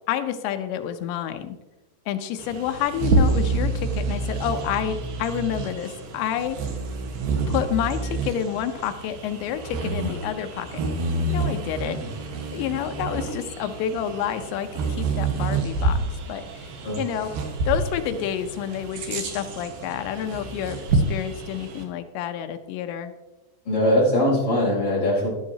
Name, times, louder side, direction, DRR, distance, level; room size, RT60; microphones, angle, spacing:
voice 1, 0.1-1.6 2.1-6.6 7.5-10.8 11.3-12.0 12.5-16.0 16.3-17.3 17.7-23.1, left 9 dB, 85° left, 8 dB, 3.0 m, -29 dB
Bird vocalization bird call bird song, 2.4-21.8, right 3 dB, 65° right, 2.8 m, -28 dB
voice 2, 23.6-25.3, left 1 dB, 25° left, -6 dB, 4.5 m, -21 dB
12.5 x 10.5 x 2.8 m, 1.1 s
omnidirectional pair, 5.0 m